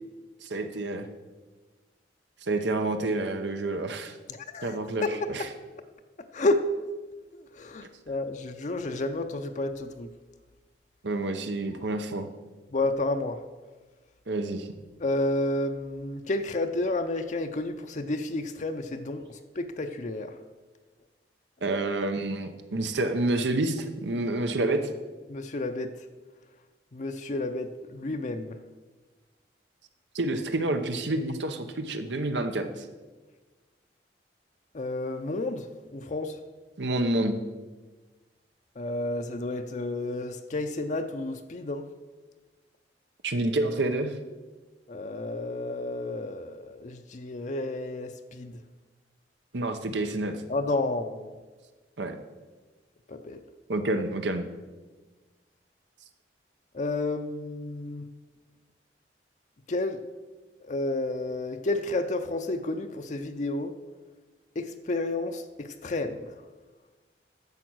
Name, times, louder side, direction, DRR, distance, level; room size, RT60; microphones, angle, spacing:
voice 1, 0.4-1.1 2.4-4.2 4.6-5.5 11.0-12.3 14.3-14.7 21.6-24.9 30.1-32.9 36.8-37.4 43.2-44.2 49.5-50.4 52.0-52.2 53.7-54.5, right 2 dB, 85° right, 7 dB, 0.9 m, -28 dB
voice 2, 4.3-5.3 6.3-6.7 7.3-10.1 12.7-13.4 15.0-20.4 25.3-25.9 26.9-28.6 34.7-35.6 35.9-36.4 38.8-41.8 44.9-48.5 50.5-51.3 53.1-53.4 56.7-58.1 59.7-60.0 60.6-63.7 64.6-66.3, left 2 dB, 45° left, 7 dB, 0.5 m, -31 dB
10.5 x 7.1 x 6.2 m, 1.3 s
head